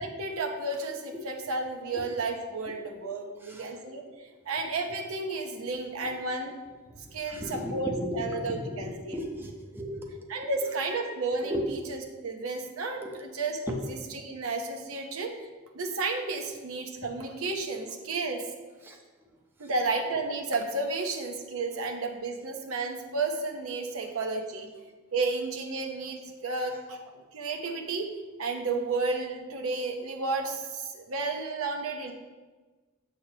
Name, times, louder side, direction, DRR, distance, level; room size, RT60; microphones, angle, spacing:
voice 1, 0.0-6.5 7.1-7.9 8.1-9.2 10.3-13.6 14.2-15.5 15.7-18.4 19.6-24.7 25.1-28.1 28.4-32.1, right 3 dB, 80° right, 3 dB, 0.8 m, -32 dB
voice 2, 3.4-3.7 5.3-5.4 6.0-6.1 6.9-10.3 11.4-11.6 13.0-13.2 13.6-13.8 18.8-19.0 19.6-19.7, left 1 dB, 10° right, 0 dB, 0.7 m, -36 dB
7.3 x 6.4 x 2.8 m, 1.3 s
head